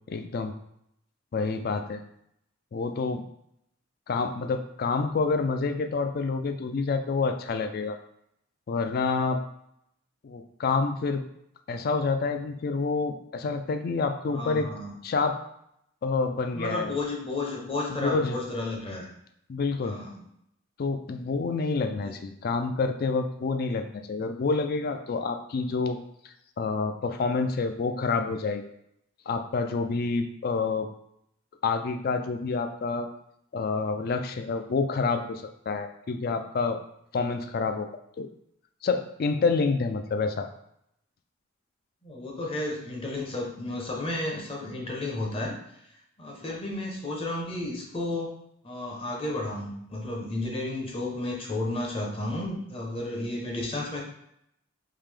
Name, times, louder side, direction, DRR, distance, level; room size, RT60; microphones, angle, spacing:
voice 1, 0.1-0.5 1.3-2.0 2.7-3.2 4.1-8.0 8.7-9.4 10.2-11.2 11.7-14.7 15.0-15.4 16.0-16.9 18.0-18.4 19.5-20.0 20.8-26.0 26.2-28.6 29.3-30.9 31.6-33.1 33.5-36.8 37.1-37.9 38.2-38.3 38.8-40.5 46.5-46.6, left 4 dB, 45° left, 8 dB, 0.3 m, -28 dB
voice 2, 14.3-15.0 16.3-19.1 19.8-20.2 22.0-22.2 42.0-45.6 46.2-48.3 48.6-54.0, left 2 dB, 25° left, -1 dB, 0.7 m, -32 dB
3.7 x 2.8 x 3.3 m, 0.75 s
head